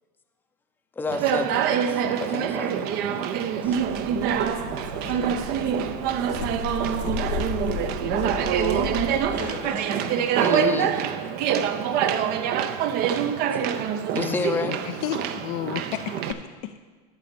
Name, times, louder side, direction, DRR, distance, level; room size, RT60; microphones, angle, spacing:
voice 1, 1.0-3.2 3.6-3.8 4.2-4.4 5.0-5.3 7.6-7.7 8.8-9.3 10.4-11.3 12.6-12.8 13.3-13.9 14.1-14.8, left 3 dB, 10° left, 6 dB, 0.6 m, -32 dB
Conversation, 1.1-16.3, right 8 dB, 45° right, 0.6 m, -25 dB
sound 1, 3.6-9.6, left 7 dB, 70° left, 1.1 m, -35 dB
voice 2, 4.6-6.0 9.3-10.2 11.2-11.4, left 4 dB, 90° left, 2 dB, 2.0 m, -41 dB
voice 3, 14.2-16.9, left 12 dB, 50° left, 8 dB, 0.4 m, -32 dB
12.0 x 4.2 x 6.8 m, 1.5 s
hypercardioid pair, 105°, 21 cm